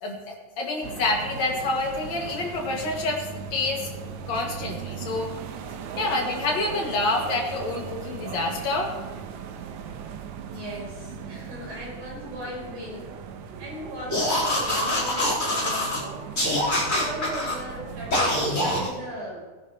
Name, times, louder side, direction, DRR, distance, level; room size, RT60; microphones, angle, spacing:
voice 1, 0.0-3.9 4.3-5.3 6.0-8.9, left 2 dB, 50° left, -1 dB, 2.9 m, -27 dB
sound 1, 0.8-18.9, right 6 dB, 85° right, 1.7 m, -38 dB
voice 2, 10.4-13.2 13.6-16.2 16.8-19.4, equal, 50° right, -5 dB, 6.3 m, -37 dB
sound 2, 14.1-16.0 16.4-17.6 18.1-18.9, left 1 dB, 20° left, 4.0 m, -24 dB
20.5 x 10.5 x 3.0 m, 1.4 s
omnidirectional pair, 4.5 m